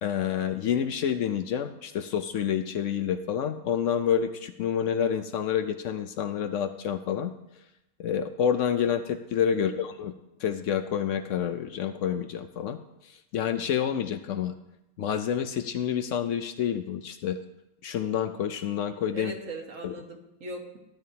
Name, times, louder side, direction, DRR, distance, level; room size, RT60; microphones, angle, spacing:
voice 1, 0.0-7.3 8.0-10.1 10.4-14.6 15.0-17.4 17.8-19.3 19.8-20.0, left 8 dB, 65° left, 9 dB, 0.9 m, -28 dB
voice 2, 19.1-20.8, right 2 dB, 65° right, 2 dB, 1.7 m, -39 dB
13.0 x 10.5 x 2.8 m, 0.89 s
omnidirectional pair, 1.5 m